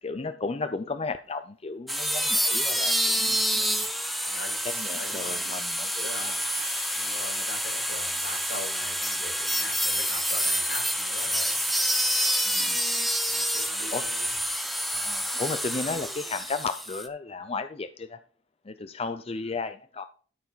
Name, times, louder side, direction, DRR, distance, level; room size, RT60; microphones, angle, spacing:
voice 1, 0.0-3.9 4.6-6.4 12.4-12.8 13.9-14.1 14.9-18.2 18.7-20.1, left 3 dB, 30° left, 0.5 m, -34 dB
sound 1, 1.9-17.1, equal, ahead, 0.9 m, -28 dB
sound 2, 2.6-3.3 4.5-5.3 6.4-7.2 8.0-8.8 9.8-10.5 11.5-12.1 13.0-13.7, right 10 dB, 35° right, 1.3 m, -44 dB
voice 2, 4.3-4.6 4.9-5.6 6.0-6.4 6.9-11.6 13.3-14.3 19.4-19.6, left 2 dB, 75° left, 6.3 m, -41 dB
13.0 x 6.9 x 4.1 m
head